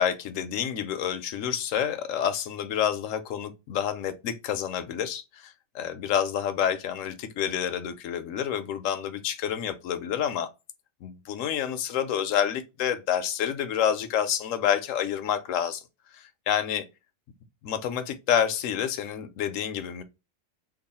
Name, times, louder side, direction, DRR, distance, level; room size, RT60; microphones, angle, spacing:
voice 1, 0.0-10.5 11.0-15.8 16.1-16.8 17.6-20.0, left 9 dB, 75° left, 0.9 m, -28 dB
3.0 x 2.3 x 4.0 m
omnidirectional pair, 1.4 m